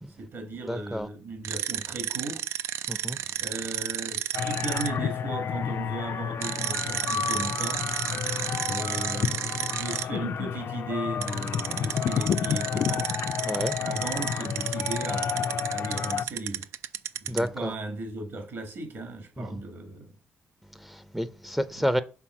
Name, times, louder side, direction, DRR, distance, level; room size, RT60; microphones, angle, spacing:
voice 1, 0.2-2.6 3.4-7.9 8.6-13.1 13.8-16.6 17.2-20.1 21.8-21.9, right 2 dB, 60° right, 1.9 m, -37 dB
voice 2, 0.7-1.1 2.9-3.2 13.5-13.8 17.3-17.7 19.4-19.6 20.8-22.0, equal, 5° right, 0.5 m, -30 dB
sound 1, 1.4-4.9 6.4-10.0 11.2-17.5, right 10 dB, 90° right, 0.4 m, -32 dB
sound 2, 4.3-16.3, left 8 dB, 55° left, 0.4 m, -30 dB
5.9 x 3.7 x 6.0 m
cardioid pair, 105°, 4 cm